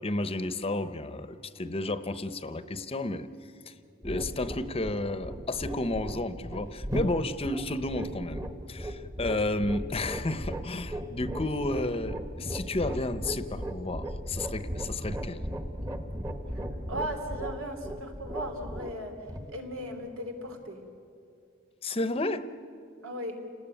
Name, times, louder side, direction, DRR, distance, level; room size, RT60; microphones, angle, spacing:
voice 1, 0.0-3.3 3.7-3.8 4.0-8.4 8.7-15.4 21.8-22.5, left 2 dB, 30° left, 12 dB, 0.8 m, -32 dB
sound 1, 4.0-20.5, equal, 20° right, 1.3 m, -37 dB
voice 2, 16.5-19.1 19.5-20.8 23.0-23.4, equal, 90° right, 4 dB, 3.5 m, -37 dB
29.5 x 19.5 x 9.1 m, 2.4 s
head